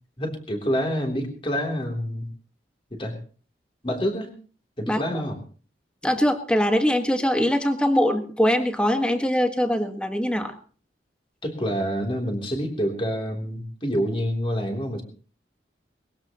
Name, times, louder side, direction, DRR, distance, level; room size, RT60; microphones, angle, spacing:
voice 1, 0.2-2.3 2.9-3.2 3.8-4.3 4.8-5.4 11.4-15.0, equal, 30° left, 3 dB, 3.4 m, -27 dB
voice 2, 6.0-10.5, equal, 5° left, 6 dB, 1.6 m, -22 dB
22.0 x 16.5 x 3.1 m, 0.39 s
head